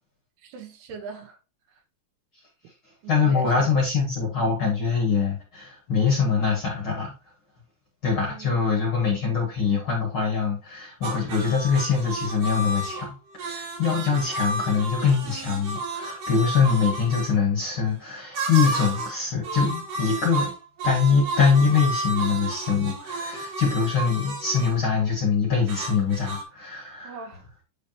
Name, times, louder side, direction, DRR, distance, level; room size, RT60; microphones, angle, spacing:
voice 1, 0.4-1.4 1.7-1.8 3.0-3.8 8.2-8.9 27.0-27.5, right 5 dB, 75° right, 3.1 m, -40 dB
voice 2, 3.1-7.1 8.0-20.5 20.8-27.2, left 5 dB, 45° left, 1.9 m, -23 dB
sound 1, 11.0-17.3 18.3-19.2 19.4-24.8 25.7-26.4, right 2 dB, 60° right, 3.2 m, -32 dB
9.6 x 5.0 x 3.0 m
omnidirectional pair, 5.0 m